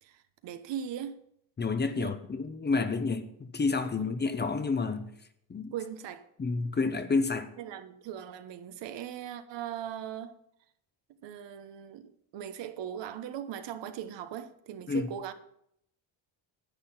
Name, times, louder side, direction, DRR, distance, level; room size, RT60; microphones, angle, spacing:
voice 1, 0.0-1.2 1.9-2.1 3.8-4.1 5.7-6.3 7.4-10.3 11.2-15.3, right 9 dB, 65° right, 1.2 m, -39 dB
voice 2, 1.6-5.1 5.5-5.7 6.4-7.5 14.9-15.1, left 4 dB, 20° left, 0.9 m, -29 dB
10.5 x 8.8 x 5.7 m
cardioid pair, 110°, 46 cm